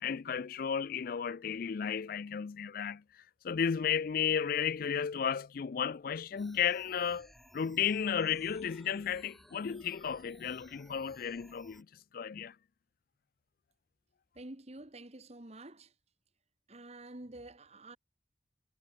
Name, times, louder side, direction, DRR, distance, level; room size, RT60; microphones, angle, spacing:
voice 1, 0.0-3.0 3.4-11.9 12.1-12.5, left 7 dB, 50° left, 0.4 m, -33 dB
sound 1, 6.4-11.8, equal, ahead, 4.3 m, -59 dB
voice 2, 14.3-15.9 16.7-18.0, right 2 dB, 35° right, 1.6 m, -48 dB
head